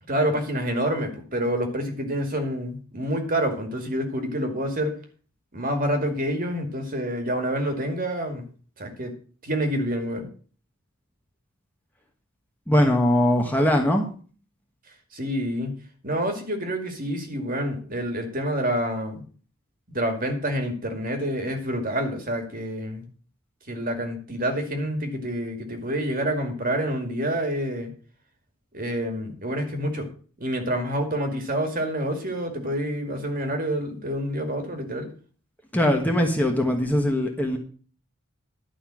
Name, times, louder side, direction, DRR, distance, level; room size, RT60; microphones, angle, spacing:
voice 1, 0.1-4.9 5.5-8.5 8.8-9.1 9.4-10.3 15.1-15.8 16.0-19.2 19.9-23.1 23.7-27.9 28.7-30.1 30.4-35.1, equal, 40° right, 5 dB, 2.2 m, -27 dB
voice 2, 12.7-14.1 35.7-37.6, left 1 dB, 10° left, 2 dB, 1.4 m, -21 dB
11.5 x 5.6 x 7.6 m, 0.41 s
head